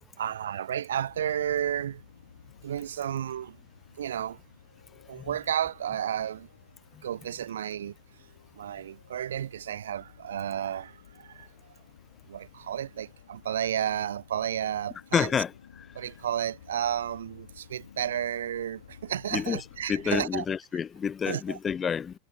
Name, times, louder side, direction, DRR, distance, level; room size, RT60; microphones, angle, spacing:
voice 1, 0.2-2.0 2.6-3.6 4.0-4.4 5.1-6.5 7.0-7.9 8.6-11.5 12.3-15.3 15.9-20.4 21.3-21.6, right 10 dB, 65° right, 0.9 m, -32 dB
sound 1, 0.9-20.1, left 8 dB, 65° left, 3.8 m, -54 dB
voice 2, 15.1-15.5 19.3-22.1, left 7 dB, 20° left, 0.4 m, -28 dB
figure-of-eight pair, 90°, 0 cm